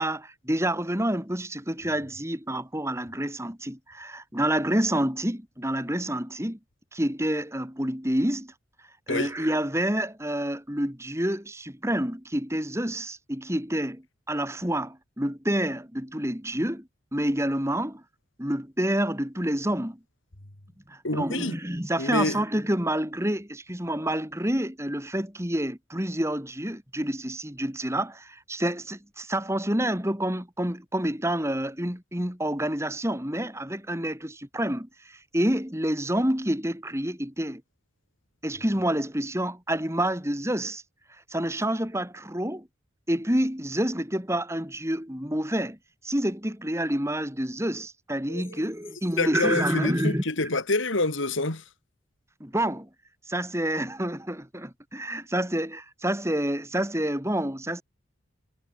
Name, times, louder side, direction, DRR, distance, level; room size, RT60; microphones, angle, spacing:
voice 1, 0.0-6.6 6.9-8.5 9.1-18.0 18.4-20.0 20.9-37.6 38.4-40.8 41.3-42.7 43.1-45.8 46.0-50.2 52.4-52.9 53.3-57.8, right 1 dB, 15° right, 4.2 m, -28 dB
voice 2, 21.0-21.6 22.0-22.4 48.3-48.4 49.2-51.6, left 2 dB, 70° left, 2.8 m, -27 dB
head